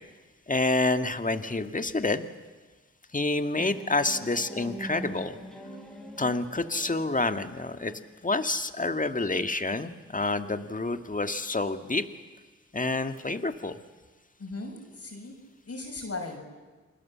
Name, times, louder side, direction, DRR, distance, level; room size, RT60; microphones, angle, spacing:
voice 1, 0.5-2.3 3.1-5.4 6.2-7.9 8.2-12.0 12.7-13.8, left 2 dB, 25° left, 8 dB, 1.8 m, -28 dB
sound 1, 3.6-8.2, right 1 dB, ahead, 5.4 m, -43 dB
voice 2, 14.4-15.3 15.7-16.4, left 3 dB, 50° left, 2 dB, 6.0 m, -37 dB
28.0 x 20.5 x 7.5 m, 1.3 s
supercardioid pair, 40°, 31 cm